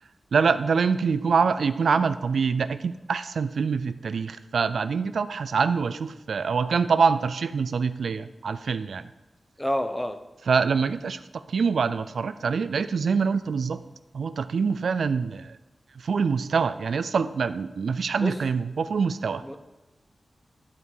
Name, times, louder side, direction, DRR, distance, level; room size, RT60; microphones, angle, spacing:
voice 1, 0.3-9.1 10.5-13.8 14.1-15.6 16.0-19.4, right 5 dB, 90° right, 13 dB, 0.3 m, -25 dB
voice 2, 9.6-10.2 18.2-18.4 19.4-19.6, equal, 15° left, 8 dB, 0.7 m, -28 dB
11.0 x 4.7 x 5.5 m, 1.1 s
wide cardioid pair, 70°, 0 cm